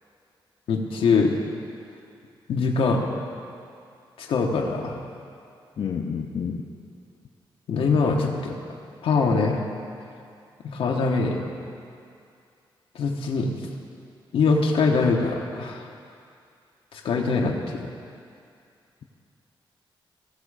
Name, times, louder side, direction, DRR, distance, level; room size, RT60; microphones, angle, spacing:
voice 1, 0.7-1.3 2.5-3.0 4.2-5.0 7.7-8.6 9.0-9.6 10.7-11.4 12.9-13.5 14.3-15.8 16.9-17.9, left 4 dB, 90° left, 0 dB, 1.2 m, -23 dB
voice 2, 5.8-6.7, left 6 dB, 65° left, 0 dB, 0.7 m, -29 dB
16.0 x 7.1 x 5.0 m, 2.4 s
cardioid pair, 85°, 9 cm